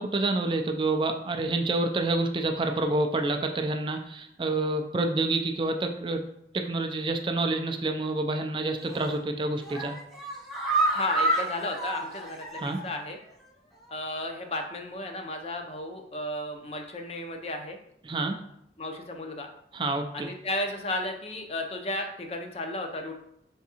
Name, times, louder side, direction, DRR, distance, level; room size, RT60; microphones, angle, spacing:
voice 1, 0.0-6.2 6.5-9.9 12.6-12.8 18.1-18.4 19.7-20.3, right 2 dB, 30° right, 5 dB, 0.3 m, -28 dB
sound 1, 8.8-9.2 9.6-13.0 13.3-13.4 13.8-13.9, right 2 dB, ahead, 0.7 m, -29 dB
voice 2, 10.9-12.4 12.8-13.2 13.9-17.8 18.8-19.5 20.1-23.1, left 1 dB, 35° left, 4 dB, 0.5 m, -33 dB
5.0 x 3.5 x 2.8 m, 0.74 s
head